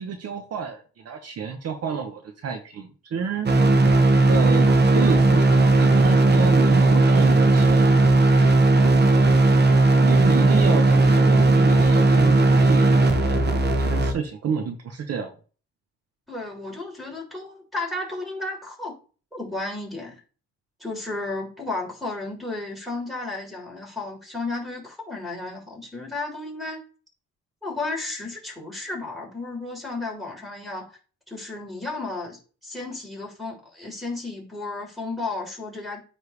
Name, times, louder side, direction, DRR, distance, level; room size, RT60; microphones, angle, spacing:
voice 1, 0.0-3.5 4.3-8.0 10.0-13.5 13.9-15.3, right 6 dB, 55° right, 5 dB, 1.0 m, -29 dB
sound 1, 3.5-14.1, right 2 dB, 35° right, 1.2 m, -17 dB
voice 2, 16.3-18.9 19.3-20.2 20.8-26.8 27.6-31.0 31.3-36.0, left 2 dB, ahead, -2 dB, 3.7 m, -33 dB
9.5 x 3.3 x 3.3 m, 0.37 s
cardioid pair, 90°, 30 cm